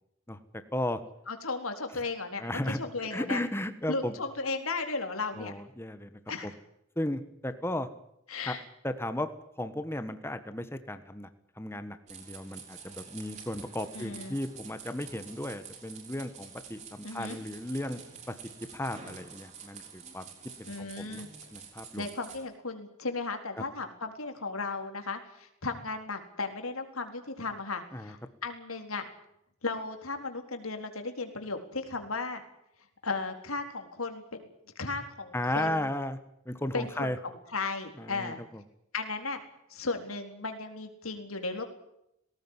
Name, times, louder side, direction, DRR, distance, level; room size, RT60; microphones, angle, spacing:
voice 1, 1.3-3.4 3.9-5.5 6.3-6.5 8.3-8.6 13.9-14.4 17.0-17.4 20.7-21.3 21.9-29.1 29.6-32.4 33.0-34.4 34.8-35.9 36.7-38.4 38.9-39.4 39.7-41.6, left 3 dB, 90° left, 6 dB, 4.0 m, -35 dB
voice 2, 2.4-4.1 5.3-6.5 7.0-7.9 8.5-8.6 8.8-9.3 9.6-11.3 11.6-18.0 18.3-18.4 18.7-20.2 20.6-21.2 21.5-22.0 27.9-28.1 35.3-36.2 36.4-37.2 38.0-38.6, left 1 dB, 10° left, 10 dB, 1.4 m, -35 dB
sound 1, 12.1-22.4, right 6 dB, 35° right, 6.0 m, -48 dB
19.5 x 18.0 x 9.8 m, 0.79 s
head